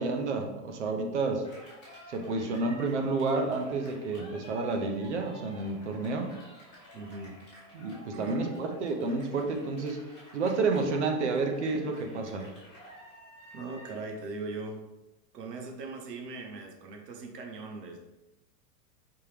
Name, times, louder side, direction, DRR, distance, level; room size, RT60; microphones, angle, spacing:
voice 1, 0.0-1.5 2.1-6.3 7.7-10.0 10.3-12.5, right 3 dB, 45° right, 4 dB, 0.6 m, -30 dB
Cheering, 1.4-14.1, equal, ahead, 0.5 m, -51 dB
voice 2, 6.9-7.4 8.1-8.6 13.5-14.8 15.3-18.0, right 3 dB, 80° right, 3 dB, 0.9 m, -40 dB
5.3 x 2.9 x 3.3 m, 0.99 s
supercardioid pair, 180°, 48 cm